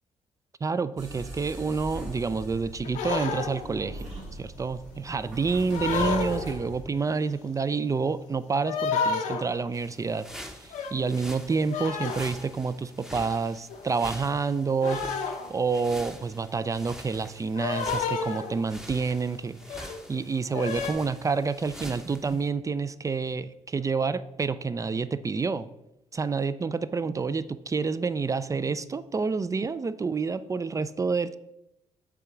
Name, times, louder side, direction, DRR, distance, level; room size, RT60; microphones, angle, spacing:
voice 1, 0.6-10.3 10.6-15.1 15.5-25.7 26.1-31.4, right 4 dB, 25° right, 14 dB, 0.3 m, -28 dB
sound 1, 1.0-6.8, right 1 dB, 70° right, 2.1 m, -40 dB
sound 2, 2.8-3.7 5.7-6.6 8.6-9.5 10.7-11.1 11.7-12.4 13.7-13.9 14.8-15.8 17.5-18.7 19.6-20.0 20.5-20.9, left 5 dB, 90° left, 0.8 m, -30 dB
sound 3, 9.7-22.5, equal, 5° right, 0.8 m, -45 dB
6.9 x 3.7 x 4.5 m, 0.88 s
cardioid pair, 70°, 13 cm